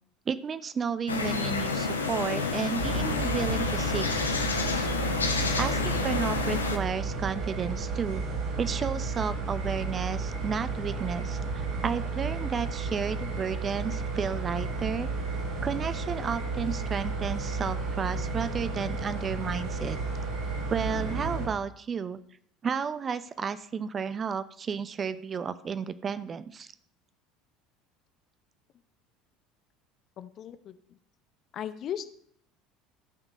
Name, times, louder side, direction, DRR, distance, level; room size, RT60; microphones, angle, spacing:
voice 1, 0.3-4.1 5.6-8.2 8.6-15.1 15.6-20.0 20.7-22.2 22.6-26.7, right 6 dB, 30° right, 14 dB, 0.7 m, -32 dB
sound 1, 1.1-6.8, left 4 dB, 80° left, 1.0 m, -29 dB
sound 2, 2.8-21.5, right 3 dB, 60° right, 3.1 m, -32 dB
voice 2, 30.2-30.7 31.5-32.1, left 9 dB, 40° left, 13 dB, 0.8 m, -36 dB
14.0 x 6.1 x 5.2 m, 0.67 s
figure-of-eight pair, 65°, 0 cm